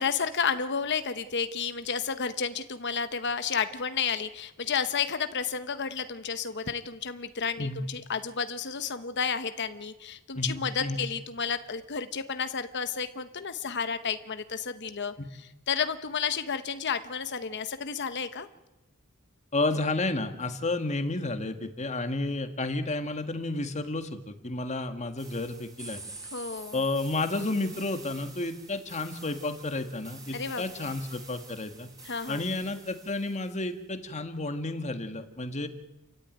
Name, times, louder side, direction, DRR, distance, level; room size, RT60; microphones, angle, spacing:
voice 1, 0.0-15.1 15.7-18.5 26.3-26.8 30.3-30.9 32.0-32.4, left 6 dB, 55° left, 10 dB, 1.0 m, -31 dB
voice 2, 10.3-11.0 19.5-26.0 26.7-31.9 32.3-35.7, left 2 dB, 35° left, 7 dB, 1.8 m, -31 dB
sound 1, 25.2-33.6, right 3 dB, 20° right, 5.1 m, -47 dB
29.5 x 14.5 x 9.3 m, 1.0 s
head